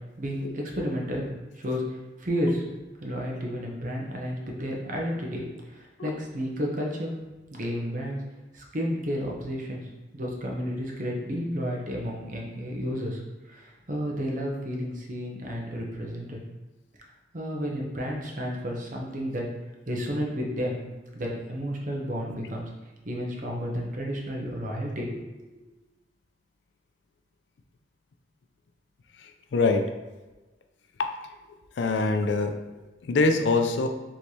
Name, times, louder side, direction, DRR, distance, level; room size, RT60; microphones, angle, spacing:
voice 1, 0.2-1.2 1.6-1.8 2.2-2.6 3.0-5.4 5.7-7.2 7.5-8.2 8.5-9.8 10.1-13.2 13.5-16.4 17.3-19.4 19.9-20.8 21.1-22.7 23.1-25.5, equal, 45° right, -1 dB, 0.8 m, -31 dB
voice 2, 29.2-29.8 31.0-31.1 31.8-32.6 33.0-33.9, left 3 dB, 80° left, 6 dB, 0.4 m, -24 dB
4.6 x 3.2 x 2.8 m, 1.2 s
head